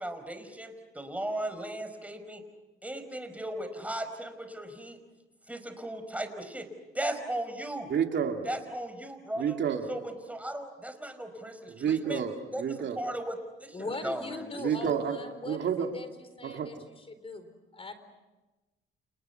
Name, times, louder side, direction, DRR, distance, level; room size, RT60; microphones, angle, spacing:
voice 1, 0.0-2.4 2.8-5.0 5.5-6.7 6.9-7.9 8.4-9.6 9.9-12.2 12.5-14.5, right 1 dB, 5° right, 7 dB, 5.1 m, -37 dB
voice 2, 7.9-8.4 9.4-9.9 11.8-13.0 14.6-15.2 15.5-15.9 16.4-16.7, right 8 dB, 65° right, 4 dB, 2.7 m, -29 dB
voice 3, 13.7-18.0, left 2 dB, 30° left, 10 dB, 4.4 m, -40 dB
29.5 x 29.5 x 5.9 m, 1.1 s
cardioid pair, 90°, 20 cm